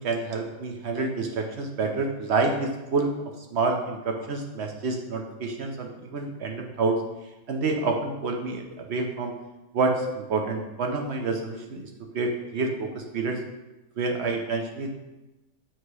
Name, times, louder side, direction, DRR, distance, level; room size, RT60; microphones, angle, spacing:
voice 1, 0.0-3.1 3.5-7.0 7.5-9.3 9.7-11.9 12.1-13.4 14.0-14.9, right 3 dB, 60° right, 3 dB, 0.9 m, -28 dB
7.4 x 3.0 x 4.7 m, 1.0 s
omnidirectional pair, 1.4 m